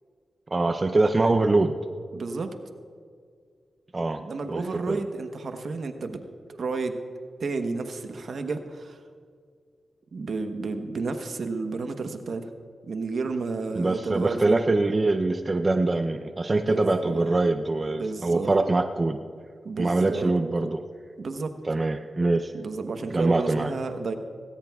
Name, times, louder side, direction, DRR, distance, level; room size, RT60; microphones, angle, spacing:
voice 1, 0.5-1.7 3.9-4.2 4.5-5.0 13.8-19.2 19.8-20.8 21.6-22.5 23.1-23.7, right 2 dB, 35° right, 7 dB, 0.6 m, -23 dB
voice 2, 2.1-2.5 4.2-6.2 6.5-7.0 7.4-9.0 10.1-12.5 12.9-14.6 16.7-17.4 18.0-18.7 19.6-20.3 21.2-21.5 22.5-24.1, right 4 dB, 70° right, 6 dB, 1.0 m, -31 dB
18.5 x 17.0 x 2.4 m, 2.1 s
cardioid pair, 80°, 0 cm